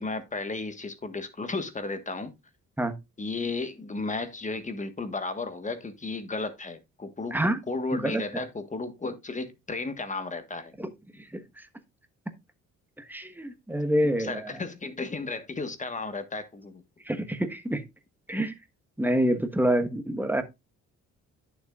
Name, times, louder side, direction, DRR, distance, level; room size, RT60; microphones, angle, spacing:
voice 1, 0.0-2.3 3.2-10.7 14.0-16.8, left 3 dB, 25° left, 1.4 m, -34 dB
voice 2, 7.9-8.2 10.8-10.9 11.3-11.4 13.1-14.5 17.1-17.8 18.3-18.5 19.0-20.4, right 1 dB, 5° right, 1.3 m, -26 dB
11.0 x 7.0 x 2.4 m
cardioid pair, 90°, 30 cm